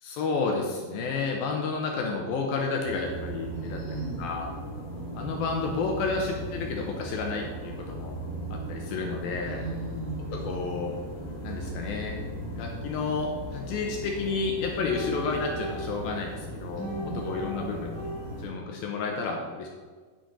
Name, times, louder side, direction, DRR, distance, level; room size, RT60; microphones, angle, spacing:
voice 1, 0.0-3.8 4.2-4.5 5.1-8.1 8.5-9.6 10.3-11.0 11.4-12.2 12.6-18.1 18.4-19.7, left 4 dB, 75° left, 1 dB, 2.4 m, -31 dB
sound 1, 2.8-18.5, right 1 dB, 10° left, 2.2 m, -37 dB
voice 2, 3.5-4.2 9.5-10.4 16.7-17.3, right 3 dB, 25° right, -7 dB, 1.8 m, -36 dB
10.0 x 6.2 x 5.5 m, 1.5 s
omnidirectional pair, 5.0 m